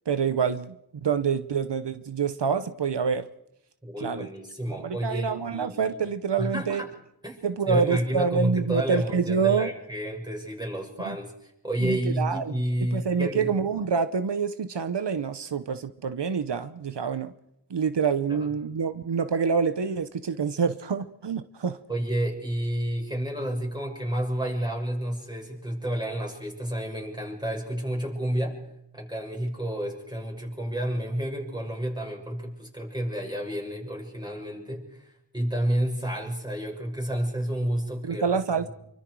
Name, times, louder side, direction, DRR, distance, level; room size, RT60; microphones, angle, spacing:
voice 1, 0.1-3.3 4.0-4.3 4.7-6.8 7.4-9.7 11.0-11.2 11.8-12.6 12.9-17.3 17.7-21.8 38.0-38.7, right 6 dB, 80° right, 12 dB, 0.9 m, -27 dB
voice 2, 3.8-6.0 6.4-6.9 7.2-13.5 18.3-18.5 21.9-28.6 28.9-38.3 38.6-38.7, right 1 dB, 10° right, 0 dB, 6.6 m, -30 dB
27.0 x 24.0 x 4.7 m, 0.80 s
wide cardioid pair, 60°, 41 cm